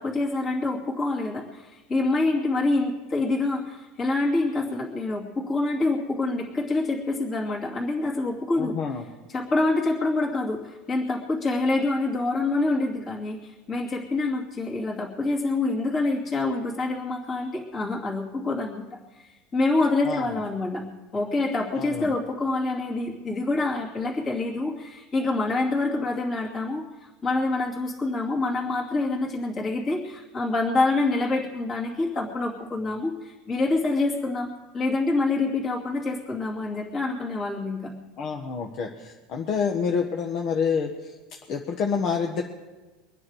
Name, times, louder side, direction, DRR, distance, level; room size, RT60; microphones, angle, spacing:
voice 1, 0.0-8.8 9.3-18.9 19.1-20.8 21.1-26.8 27.2-37.9, left 2 dB, 30° left, -5 dB, 2.7 m, -26 dB
voice 2, 8.6-9.0 20.0-20.4 21.7-22.1 38.2-41.1 41.5-42.4, left 6 dB, 45° left, 2 dB, 1.3 m, -28 dB
24.0 x 9.7 x 4.9 m, 1.2 s
supercardioid pair, 135°, 0 cm